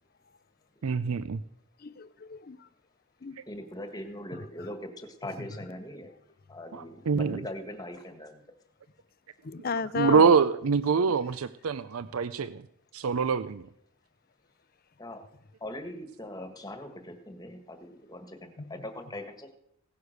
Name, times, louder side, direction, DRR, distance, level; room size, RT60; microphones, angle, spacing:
voice 1, 0.8-1.4 6.7-7.4 10.0-12.6 12.9-13.6, right 5 dB, 80° right, 14 dB, 0.5 m, -25 dB
voice 2, 1.8-2.7 3.2-3.4 4.3-4.4 9.4-10.4 18.7-18.8, left 4 dB, 45° left, 17 dB, 0.5 m, -34 dB
voice 3, 3.5-6.1 6.5-8.4 15.0-15.2 15.6-19.5, left 1 dB, 20° left, 7 dB, 1.6 m, -41 dB
17.0 x 9.6 x 6.5 m, 0.75 s
head